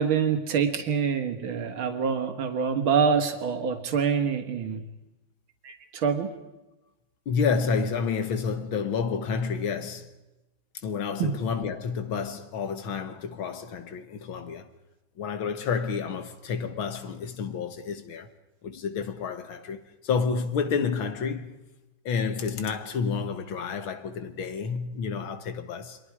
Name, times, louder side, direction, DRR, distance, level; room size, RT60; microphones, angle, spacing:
voice 1, 0.0-4.8 5.6-6.3 11.2-11.3, right 6 dB, 80° right, 2.5 m, -26 dB
voice 2, 7.3-10.1 10.8-14.7 15.2-18.3 18.6-21.6 22.1-26.0, left 5 dB, 80° left, 2.4 m, -30 dB
29.5 x 23.5 x 4.8 m
omnidirectional pair, 2.2 m